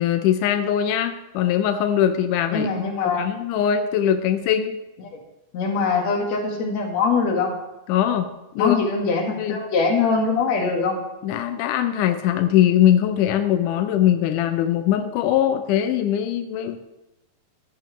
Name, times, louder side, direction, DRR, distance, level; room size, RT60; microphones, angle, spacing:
voice 1, 0.0-2.7 3.0-4.7 7.9-8.3 8.6-8.8 9.4-9.6 11.2-16.8, left 10 dB, 85° left, 8 dB, 1.8 m, -21 dB
voice 2, 2.5-3.3 5.5-7.5 8.6-11.0, left 4 dB, 55° left, 1 dB, 2.6 m, -22 dB
14.0 x 11.0 x 3.1 m, 0.97 s
omnidirectional pair, 4.4 m